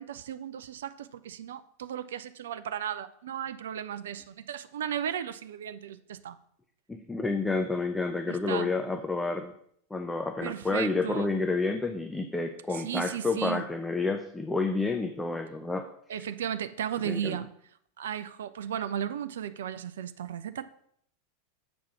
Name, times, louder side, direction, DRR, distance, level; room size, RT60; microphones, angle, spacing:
voice 1, 0.0-6.4 8.3-8.7 10.4-11.3 12.7-13.7 16.1-17.5 18.0-20.7, right 9 dB, 65° right, 12 dB, 0.4 m, -35 dB
voice 2, 6.9-9.5 9.9-15.9 16.1-16.2 17.0-17.4, left 3 dB, 10° left, 6 dB, 0.6 m, -30 dB
7.1 x 4.7 x 5.7 m, 0.68 s
figure-of-eight pair, 85°, 0 cm